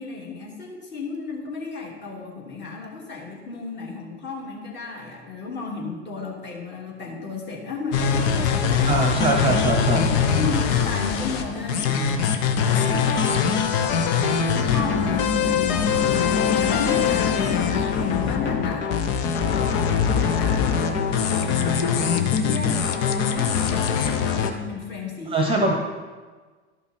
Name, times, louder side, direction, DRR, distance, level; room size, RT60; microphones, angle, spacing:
voice 1, 0.0-9.4 10.3-16.0 16.3-19.1 19.4-21.0 21.5-25.7, left 4 dB, 30° left, -2 dB, 2.5 m, -34 dB
sound 1, 7.9-24.5, left 7 dB, 45° left, 0.9 m, -22 dB
voice 2, 8.8-10.1 25.3-25.7, right 2 dB, 15° right, 2 dB, 1.0 m, -22 dB
12.0 x 5.5 x 4.4 m, 1.4 s
figure-of-eight pair, 80°, 35 cm